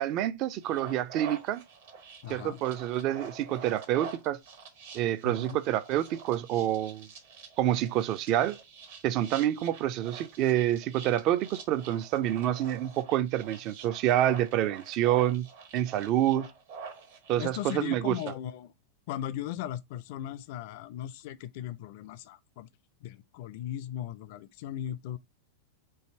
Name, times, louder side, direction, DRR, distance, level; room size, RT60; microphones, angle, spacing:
voice 1, 0.0-1.6 2.3-4.4 4.9-7.1 7.6-8.6 9.0-15.5 15.7-16.5 17.3-18.2, right 12 dB, 40° right, 0.4 m, -27 dB
sound 1, 0.6-18.3, right 5 dB, 55° right, 1.1 m, -47 dB
voice 2, 2.2-2.6 5.2-5.6 17.4-18.7 19.1-22.7 23.0-25.2, left 12 dB, 50° left, 0.4 m, -38 dB
4.8 x 2.6 x 4.3 m
figure-of-eight pair, 90°, 0 cm